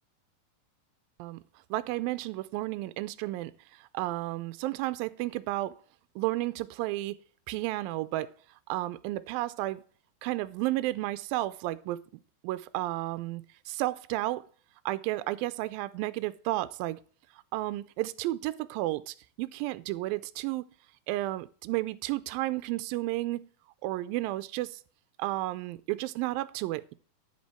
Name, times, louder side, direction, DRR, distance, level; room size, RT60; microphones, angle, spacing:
voice 1, 1.7-3.5 3.9-5.8 6.2-7.2 7.5-8.3 8.7-9.8 10.2-12.0 12.4-14.4 14.9-17.0 17.5-20.7 21.1-23.5 23.8-24.8 25.2-26.9, right 17 dB, 85° right, 2.1 m, -32 dB
10.0 x 7.4 x 4.3 m
omnidirectional pair, 4.6 m